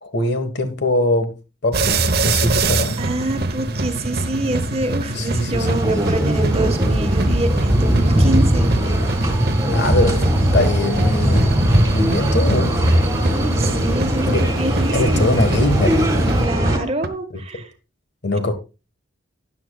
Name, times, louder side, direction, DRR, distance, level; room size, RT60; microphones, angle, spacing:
voice 1, 0.0-1.4 1.6-3.0 5.1-5.8 9.7-11.5 11.9-12.8 14.3-14.4 14.9-16.1 18.2-18.5, left 1 dB, 60° left, 1.5 m, -21 dB
sound 1, 1.7-17.1, right 2 dB, 55° right, 1.0 m, -25 dB
voice 2, 3.0-8.7 13.2-15.4 16.4-17.7, right 2 dB, 30° right, 1.4 m, -26 dB
sound 2, 5.5-16.8, equal, 15° right, 2.1 m, -19 dB
13.5 x 9.8 x 2.4 m
head